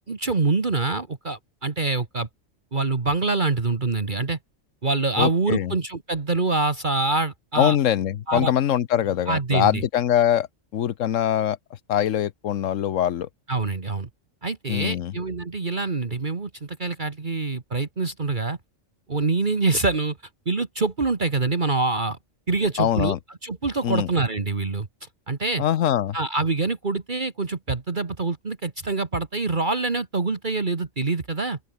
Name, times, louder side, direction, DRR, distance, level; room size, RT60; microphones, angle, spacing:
voice 1, 0.1-2.3 2.7-4.4 4.8-7.8 8.3-8.5 9.3-9.8 13.5-14.1 14.4-18.6 19.1-20.2 20.5-22.2 22.5-23.2 23.4-25.6 26.1-31.6, right 3 dB, 40° right, 1.7 m, -25 dB
voice 2, 5.2-5.7 7.6-10.5 10.7-11.6 11.9-13.3 14.7-15.1 22.8-23.2 23.8-24.1 25.6-26.2, left 10 dB, 90° left, 1.2 m, -23 dB
open air
omnidirectional pair, 1.3 m